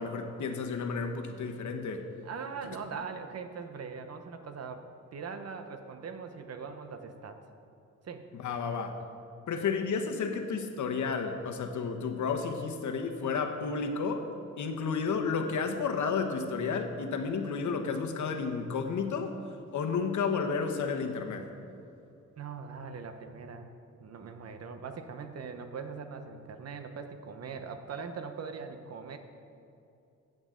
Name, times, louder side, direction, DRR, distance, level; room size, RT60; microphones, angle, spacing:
voice 1, 0.0-2.1 8.3-9.0 9.5-14.3 14.6-19.4 19.7-21.5, left 5 dB, 85° left, 5 dB, 1.0 m, -32 dB
voice 2, 2.2-7.4 8.0-8.3 22.4-23.7 24.0-29.2, right 5 dB, 60° right, 7 dB, 0.8 m, -41 dB
16.0 x 7.9 x 3.8 m, 2.7 s
wide cardioid pair, 170°, 29 cm